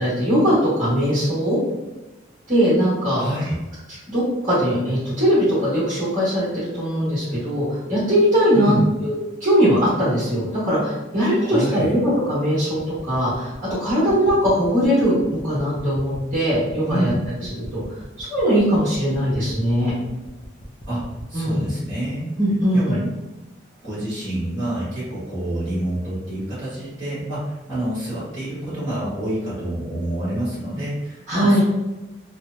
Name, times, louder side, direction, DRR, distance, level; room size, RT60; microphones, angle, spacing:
voice 1, 0.0-1.6 2.5-3.3 4.1-8.7 9.0-13.5 13.8-17.1 17.6-19.9 21.3-21.6 22.4-23.0 31.3-31.6, equal, 40° right, -11 dB, 1.3 m, -20 dB
voice 2, 3.2-3.5 8.5-8.9 11.4-11.9 16.9-17.2 20.9-22.3 22.7-23.1 23.8-31.6, right 1 dB, 25° right, -11 dB, 1.5 m, -27 dB
sound 1, 12.8-21.3, equal, 25° left, 0.4 m, -40 dB
3.0 x 2.1 x 2.5 m, 1.1 s
head